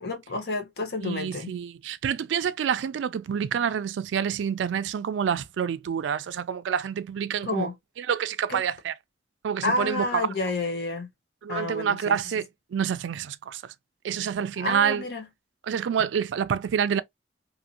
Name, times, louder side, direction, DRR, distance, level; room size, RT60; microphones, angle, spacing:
voice 1, 0.0-1.5 7.4-7.7 8.5-8.6 9.6-11.1 11.5-12.1 14.6-15.3, left 2 dB, 65° left, 0.8 m, -30 dB
voice 2, 1.0-7.7 8.0-8.9 9.4-10.3 11.4-13.7 14.0-15.0 15.6-17.0, right 8 dB, 90° right, 0.3 m, -27 dB
2.6 x 2.6 x 2.7 m
head